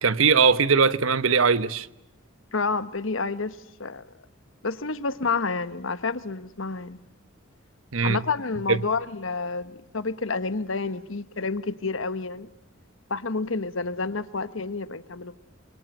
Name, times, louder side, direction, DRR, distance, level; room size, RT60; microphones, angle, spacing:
voice 1, 0.0-1.9 7.9-8.2 8.7-8.9, right 5 dB, 80° right, 1.1 m, -20 dB
voice 2, 2.5-4.1 4.6-7.0 8.0-12.5 13.1-15.3, left 4 dB, 70° left, 1.3 m, -29 dB
25.5 x 25.0 x 9.1 m
head